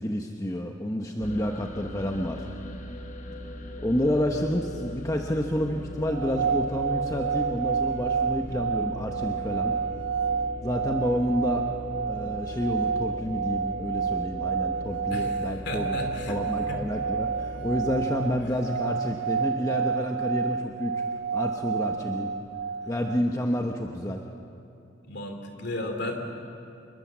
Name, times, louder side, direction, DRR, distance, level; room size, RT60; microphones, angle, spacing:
voice 1, 0.0-2.5 3.8-9.7 10.6-11.7 12.1-16.0 16.3-21.0 21.3-22.3 22.9-24.2, equal, 15° left, 2 dB, 1.0 m, -29 dB
sound 1, 1.2-18.1, equal, 35° left, 1.3 m, -39 dB
sound 2, 6.1-23.2, right 6 dB, 60° right, 0.6 m, -30 dB
voice 2, 15.1-16.4 16.7-16.8 18.4-18.5 25.0-26.2, left 2 dB, 55° left, 4 dB, 3.0 m, -34 dB
27.0 x 21.5 x 7.4 m, 2.6 s
head